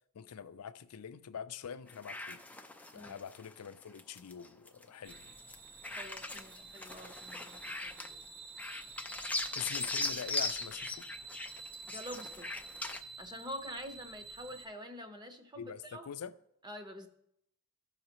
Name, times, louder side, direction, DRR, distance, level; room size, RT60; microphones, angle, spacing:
voice 1, 0.1-2.4 2.9-5.4 9.5-11.1 15.6-16.3, left 8 dB, 75° left, 0.5 m, -44 dB
sound 1, 1.9-5.6 5.8-8.2 8.6-13.0, left 2 dB, 5° left, 0.5 m, -39 dB
sound 2, 5.0-14.7, right 4 dB, 40° right, 1.3 m, -49 dB
voice 2, 5.9-8.3 11.9-12.6 13.2-16.1 16.6-17.1, equal, 20° right, 0.9 m, -46 dB
16.0 x 5.7 x 2.9 m
head